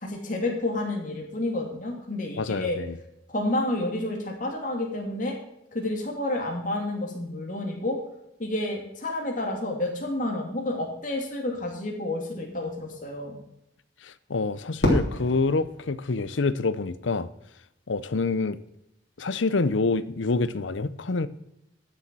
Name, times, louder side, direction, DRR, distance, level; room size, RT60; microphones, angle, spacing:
voice 1, 0.0-2.8 3.3-5.4 5.7-8.0 8.4-13.4, left 1 dB, 45° left, 0 dB, 2.8 m, -30 dB
voice 2, 2.4-3.0 14.0-17.3 17.9-18.6 19.2-21.3, left 3 dB, 90° left, 15 dB, 0.7 m, -27 dB
Fireworks, 14.8-17.0, left 1 dB, 65° left, 3.6 m, -29 dB
11.5 x 7.0 x 6.2 m, 0.83 s
head